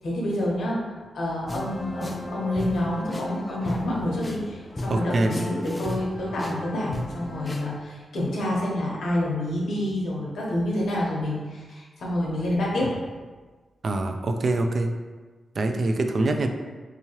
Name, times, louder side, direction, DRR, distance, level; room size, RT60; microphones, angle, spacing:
voice 1, 0.0-12.9, left 1 dB, 85° left, -4 dB, 1.0 m, -28 dB
sound 1, 1.5-7.8, left 1 dB, 25° left, 0.4 m, -35 dB
voice 2, 4.9-5.4 13.8-14.9 15.6-16.5, right 2 dB, 55° right, 5 dB, 0.3 m, -24 dB
3.6 x 2.9 x 2.9 m, 1.4 s
cardioid pair, 80°, 0 cm